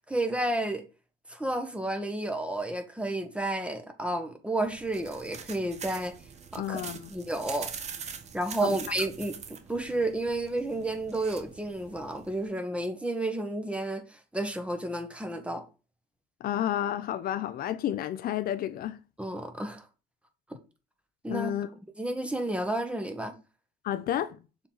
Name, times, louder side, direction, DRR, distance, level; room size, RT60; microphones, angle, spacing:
voice 1, 0.1-0.8 1.3-6.1 6.5-6.8 7.1-7.7 8.3-15.6 19.2-19.8 21.2-21.5 22.0-23.3, right 1 dB, 5° right, 1.3 m, -31 dB
sound 1, 4.6-12.5, right 6 dB, 40° right, 1.0 m, -44 dB
voice 2, 6.6-7.1 8.6-8.8 16.4-19.0 21.3-21.7 23.8-24.4, left 11 dB, 60° left, 0.5 m, -31 dB
6.9 x 4.4 x 4.0 m
cardioid pair, 110°, 17 cm